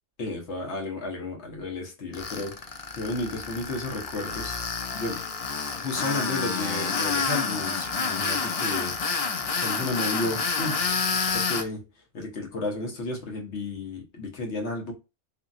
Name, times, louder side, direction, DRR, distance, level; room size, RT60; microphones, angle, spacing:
voice 1, 0.2-2.7 2.9-4.6 4.9-5.2 5.8-9.3 9.6-10.8 11.3-11.8 12.1-14.9, left 2 dB, 75° left, 1.3 m, -32 dB
Tools, 2.1-11.6, left 5 dB, 60° left, 0.3 m, -29 dB
2.8 x 2.6 x 2.3 m
omnidirectional pair, 1.2 m